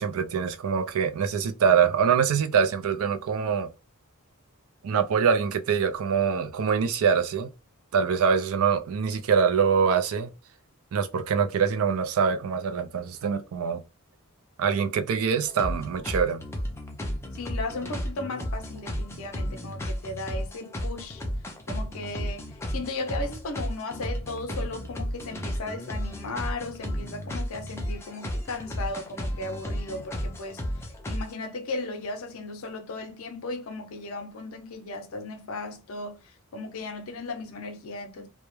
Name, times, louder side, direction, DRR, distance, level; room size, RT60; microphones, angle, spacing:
voice 1, 0.0-3.7 4.8-7.5 7.9-10.3 10.9-13.8 14.6-16.4, right 6 dB, 75° right, 0.4 m, -24 dB
sound 1, 15.5-31.3, equal, 10° left, 0.4 m, -33 dB
voice 2, 17.3-21.2 21.7-30.6 31.1-38.3, left 2 dB, 70° left, 0.5 m, -36 dB
2.2 x 2.0 x 3.0 m
head